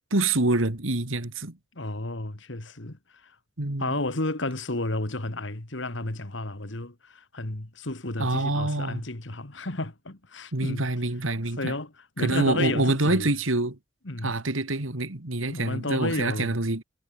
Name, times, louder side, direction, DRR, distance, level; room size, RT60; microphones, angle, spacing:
voice 1, 0.1-1.6 3.6-4.0 8.2-9.0 10.5-11.7 12.2-13.8 14.2-16.8, right 2 dB, 90° right, 2.5 m, -26 dB
voice 2, 1.8-3.4 3.8-10.9 11.6-13.3 14.0-14.4 15.5-16.6, left 2 dB, 70° left, 2.2 m, -32 dB
head